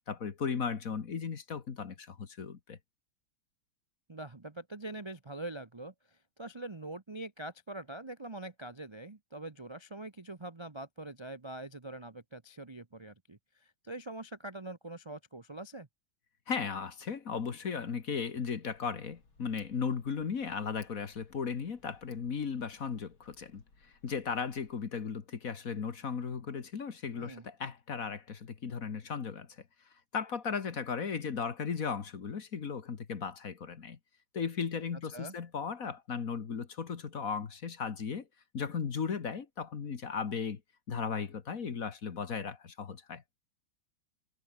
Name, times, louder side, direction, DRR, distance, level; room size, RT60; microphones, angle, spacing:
voice 1, 0.1-2.8 16.5-29.5 30.1-34.0 34.3-38.3 38.5-40.6 40.9-43.2, left 6 dB, 45° left, 1.8 m, -36 dB
voice 2, 4.1-15.9 27.2-27.4 35.1-35.3, right 2 dB, 25° right, 0.6 m, -44 dB
Tick, 18.7-24.8, left 3 dB, 80° left, 6.3 m, -65 dB
omnidirectional pair, 2.2 m